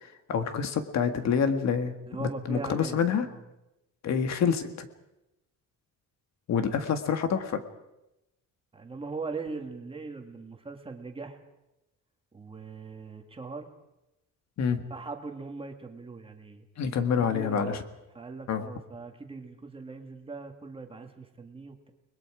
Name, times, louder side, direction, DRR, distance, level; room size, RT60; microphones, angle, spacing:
voice 1, 0.0-3.3 4.0-4.9 6.5-7.6 14.6-14.8 16.8-17.8 18.5-18.7, left 7 dB, 55° left, 8 dB, 1.8 m, -27 dB
voice 2, 2.1-3.4 8.7-11.4 12.3-13.7 14.9-16.7 17.2-17.9 18.1-21.9, right 4 dB, 15° right, 5 dB, 1.8 m, -40 dB
30.0 x 21.0 x 4.9 m, 0.92 s
cardioid pair, 175°, 32 cm